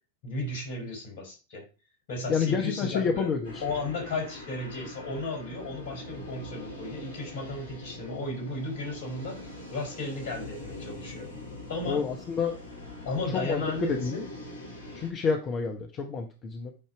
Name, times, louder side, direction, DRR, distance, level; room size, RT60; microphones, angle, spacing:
voice 1, 0.2-1.6 2.1-3.3 3.6-9.4 9.7-11.3 11.7-12.1 13.0-14.3, left 2 dB, 65° left, 3.7 m, -34 dB
voice 2, 2.3-3.6 11.9-12.6 13.3-14.2 14.9-16.7, left 5 dB, 35° left, 1.0 m, -29 dB
sound 1, 3.4-15.1, left 2 dB, 80° left, 2.6 m, -43 dB
8.8 x 2.9 x 4.9 m
figure-of-eight pair, 85°, 0 cm